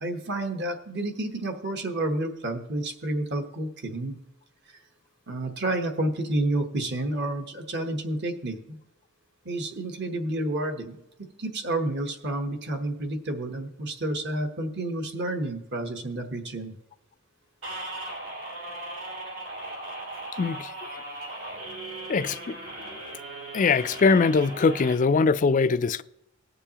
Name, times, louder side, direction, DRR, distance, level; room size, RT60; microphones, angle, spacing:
voice 1, 0.0-4.2 4.7-4.8 5.3-8.8 9.4-11.0 11.4-16.7, right 1 dB, 55° right, 1.1 m, -30 dB
sound 1, 17.6-24.9, right 1 dB, 75° right, 3.3 m, -38 dB
voice 2, 20.4-20.7 22.1-22.9 23.5-26.0, left 4 dB, 40° left, 0.3 m, -22 dB
19.5 x 6.8 x 2.9 m
head